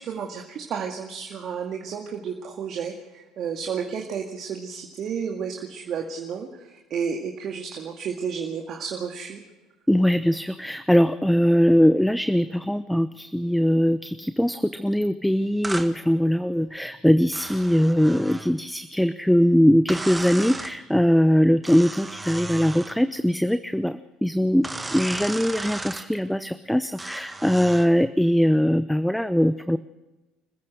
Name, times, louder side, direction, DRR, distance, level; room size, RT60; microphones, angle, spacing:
voice 1, 0.0-9.4, right 6 dB, 50° right, 2 dB, 2.2 m, -32 dB
voice 2, 9.9-29.8, equal, 5° left, 13 dB, 0.7 m, -21 dB
sound 1, 15.6-15.9 17.3-18.5 19.9-20.8 21.6-23.0 24.6-26.1 27.0-27.9, right 2 dB, 15° right, 1.8 m, -34 dB
27.0 x 15.0 x 6.4 m, 1.1 s
figure-of-eight pair, 60°, 0 cm